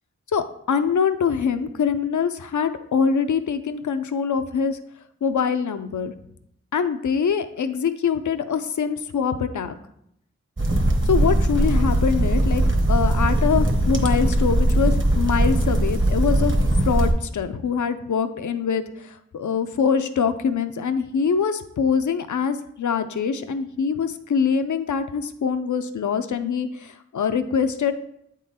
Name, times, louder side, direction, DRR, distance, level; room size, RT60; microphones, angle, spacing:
voice 1, 0.3-4.8 5.2-6.1 6.7-9.8 11.1-12.6 12.9-16.5 16.8-27.9, left 6 dB, 80° left, 9 dB, 0.5 m, -24 dB
sound 1, 10.6-17.1, right 1 dB, 40° right, 1.0 m, -20 dB
8.5 x 3.8 x 4.2 m, 0.74 s
wide cardioid pair, 50°, 29 cm